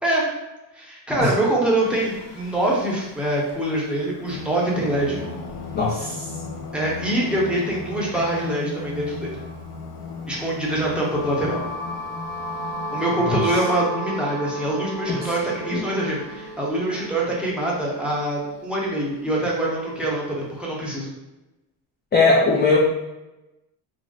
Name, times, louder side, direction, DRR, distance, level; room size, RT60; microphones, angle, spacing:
voice 1, 0.8-5.2 6.7-9.4 10.3-11.6 12.9-21.1, right 1 dB, ahead, -5 dB, 0.7 m, -24 dB
Singing, 1.8-13.2, left 4 dB, 70° left, 0.6 m, -37 dB
voice 2, 5.7-6.2 13.2-13.4 15.1-15.3 15.7-15.8 22.1-22.8, left 3 dB, 25° left, -3 dB, 0.3 m, -19 dB
sound 1, 10.7-18.6, right 1 dB, 60° right, 0.7 m, -33 dB
2.5 x 2.0 x 3.6 m, 1.0 s
cardioid pair, 120°, 44 cm